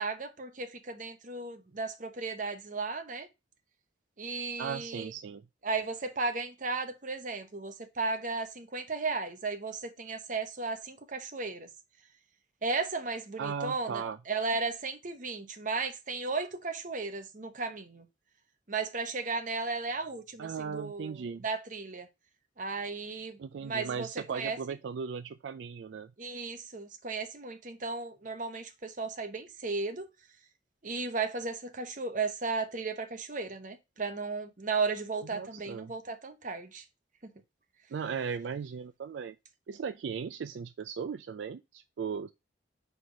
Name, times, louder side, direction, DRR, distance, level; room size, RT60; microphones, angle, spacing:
voice 1, 0.0-3.3 4.2-5.1 5.6-11.7 12.6-18.1 18.7-22.1 22.6-24.6 26.2-30.1 30.8-36.8, right 4 dB, 45° right, 0.9 m, -35 dB
voice 2, 4.6-5.4 13.4-14.2 20.4-21.4 23.4-26.1 35.3-35.9 37.9-39.4 39.7-42.3, right 6 dB, 70° right, 0.3 m, -37 dB
4.8 x 4.3 x 5.1 m
head